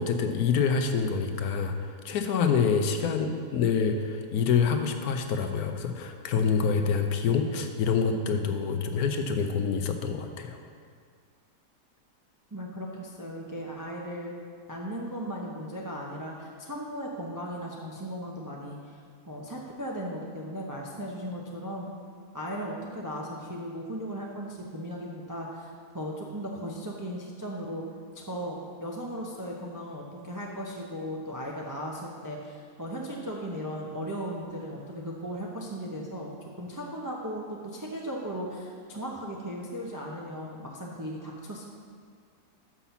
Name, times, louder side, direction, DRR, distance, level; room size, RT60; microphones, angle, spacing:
voice 1, 0.0-10.6, left 6 dB, 70° left, 6 dB, 1.1 m, -26 dB
voice 2, 12.5-14.4 14.7-19.0 19.3-21.9 22.3-27.8 28.1-41.7, equal, 30° right, -3 dB, 0.3 m, -37 dB
6.0 x 5.7 x 6.9 m, 2.1 s
omnidirectional pair, 1.7 m